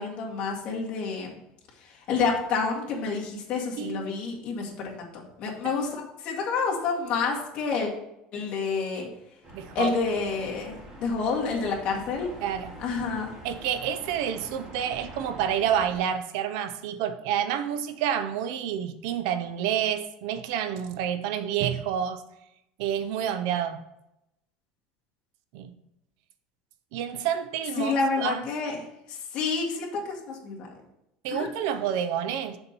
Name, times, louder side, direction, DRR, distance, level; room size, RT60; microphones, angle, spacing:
voice 1, 0.0-1.4 1.8-7.9 8.3-9.1 9.7-12.3 12.8-13.3 27.8-28.8 29.1-30.7 31.3-31.5, left 4 dB, 45° left, 2.0 m, -29 dB
sound 1, 9.4-16.0, right 1 dB, 25° right, 2.1 m, -45 dB
voice 2, 9.5-9.9 12.4-12.7 13.4-22.2 22.8-23.8 25.5-25.7 26.9-28.4 31.2-32.6, right 9 dB, 75° right, 0.6 m, -29 dB
6.9 x 4.4 x 5.3 m
cardioid pair, 145°, 3 cm